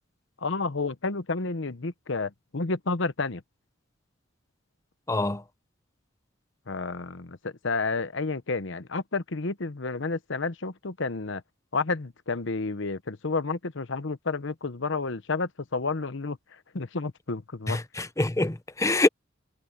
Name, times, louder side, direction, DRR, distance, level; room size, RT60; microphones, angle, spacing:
voice 1, 0.4-3.4 6.7-11.4 11.7-16.4 16.7-17.8, left 3 dB, 65° left, 1.0 m, -30 dB
voice 2, 5.1-5.4 17.7-19.1, left 2 dB, 15° left, 0.8 m, -25 dB
head